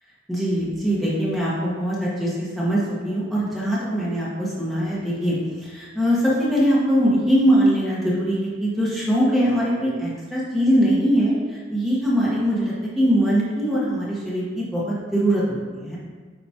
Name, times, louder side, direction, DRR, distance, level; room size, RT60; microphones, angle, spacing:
voice 1, 0.3-16.0, equal, ahead, -8 dB, 1.4 m, -22 dB
9.2 x 5.1 x 2.9 m, 1.5 s
head